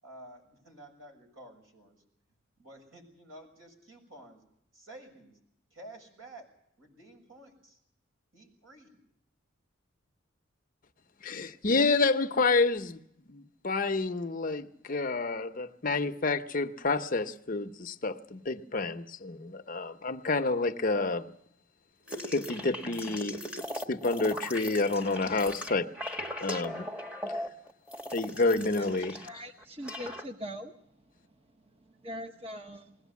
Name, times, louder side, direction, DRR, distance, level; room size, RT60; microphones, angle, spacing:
voice 1, 0.0-2.0 2.6-4.4 4.7-5.4 5.7-6.5 6.8-7.8 8.3-9.0, right 1 dB, 80° right, 6.7 m, -51 dB
voice 2, 11.2-13.0 13.3-21.2 22.3-23.4 23.9-25.9 26.4-26.9 28.1-29.2, left 3 dB, 40° left, 0.7 m, -29 dB
sound 1, 22.1-29.4 29.6-30.2, left 1 dB, 5° right, 1.1 m, -38 dB
voice 3, 29.2-30.7 32.0-33.0, equal, 30° right, 0.9 m, -41 dB
21.0 x 17.5 x 8.3 m
head